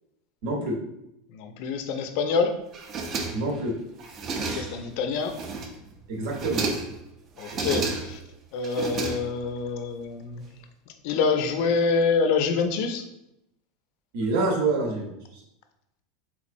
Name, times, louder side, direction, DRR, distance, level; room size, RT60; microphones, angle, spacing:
voice 1, 0.4-0.7 3.3-3.7 6.1-6.6 14.1-15.1, right 2 dB, 65° right, 0 dB, 0.9 m, -26 dB
voice 2, 1.3-2.5 4.4-5.4 7.4-8.2 8.5-10.4 11.0-13.0, left 5 dB, 60° left, 7 dB, 0.4 m, -26 dB
sound 1, 2.7-3.6 4.0-4.9 5.3-5.9 6.2-7.0 7.4-8.3 8.6-9.6, right 3 dB, 30° right, 0.4 m, -31 dB
3.5 x 3.0 x 2.5 m, 0.84 s
supercardioid pair, 155°, 0 cm